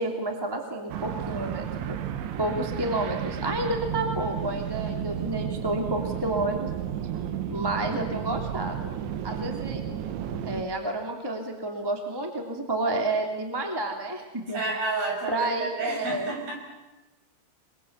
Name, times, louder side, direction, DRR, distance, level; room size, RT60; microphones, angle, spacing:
voice 1, 0.0-2.0 2.4-6.7 7.5-8.9 9.2-9.8 10.5-14.6 15.3-16.4, right 2 dB, 5° right, 3 dB, 2.2 m, -30 dB
sound 1, 0.9-10.6, right 9 dB, 80° right, 3.7 m, -32 dB
voice 2, 14.5-16.7, right 3 dB, 50° right, 1 dB, 7.9 m, -31 dB
29.0 x 22.0 x 8.3 m, 1.1 s
omnidirectional pair, 5.3 m